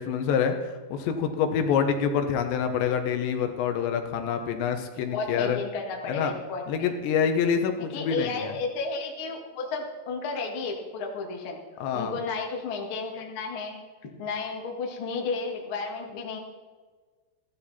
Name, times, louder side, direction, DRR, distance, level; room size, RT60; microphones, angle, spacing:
voice 1, 0.0-5.6 6.1-6.3 6.7-8.5 11.8-12.2, left 7 dB, 80° left, 6 dB, 3.2 m, -26 dB
voice 2, 5.1-6.9 7.9-11.6 11.9-13.8 14.2-16.4, left 4 dB, 45° left, 0 dB, 1.8 m, -32 dB
15.0 x 12.5 x 4.2 m, 1.4 s
omnidirectional pair, 5.2 m